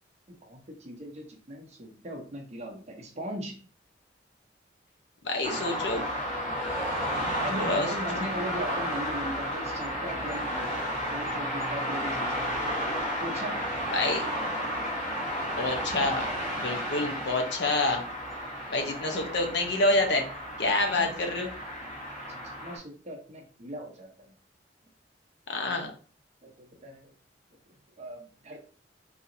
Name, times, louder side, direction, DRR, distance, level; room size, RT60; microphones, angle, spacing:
voice 1, 0.3-3.6 6.4-6.5 6.9-12.4 13.2-13.7 18.8-19.2 20.8-21.1 22.3-24.3 26.4-27.1 28.0-28.6, equal, 40° right, 2 dB, 0.8 m, -39 dB
voice 2, 5.2-6.0 7.5-7.9 8.2-8.3 13.9-14.2 15.6-16.3 16.6-18.0 18.7-20.3 20.6-21.5 25.5-25.9, left 2 dB, 70° left, 3 dB, 0.8 m, -27 dB
sound 1, 5.4-22.8, equal, 35° left, 1.3 m, -32 dB
4.0 x 2.9 x 2.7 m, 0.40 s
head